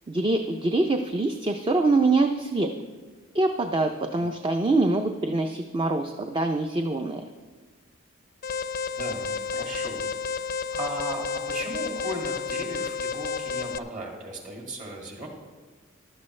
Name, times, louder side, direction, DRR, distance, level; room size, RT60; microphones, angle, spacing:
voice 1, 0.1-2.7 3.3-7.2, right 2 dB, 25° right, 5 dB, 0.5 m, -24 dB
Alarm, 8.4-13.8, left 5 dB, 45° left, 0.4 m, -31 dB
voice 2, 8.9-10.1 10.7-15.3, right 1 dB, 40° right, 0 dB, 2.4 m, -36 dB
15.0 x 12.0 x 3.2 m, 1.4 s
head